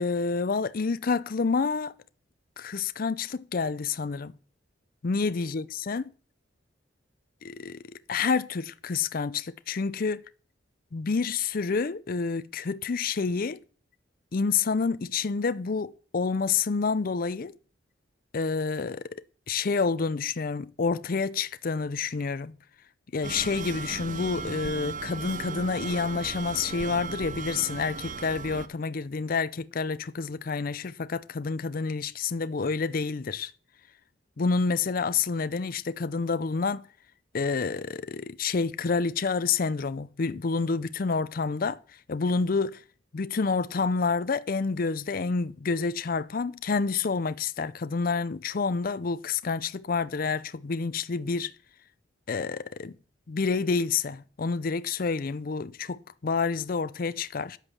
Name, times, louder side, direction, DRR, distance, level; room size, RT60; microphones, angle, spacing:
voice 1, 0.0-1.9 2.6-4.3 5.0-6.0 7.4-7.8 8.1-10.2 10.9-13.6 14.3-17.5 18.3-22.5 23.1-33.5 34.4-36.9 37.3-41.8 42.1-42.8 43.1-51.5 52.3-53.0 53.3-57.6, left 4 dB, 50° left, 0.5 m, -28 dB
sound 1, 23.2-28.7, right 4 dB, 45° right, 0.7 m, -37 dB
10.0 x 8.2 x 7.1 m
head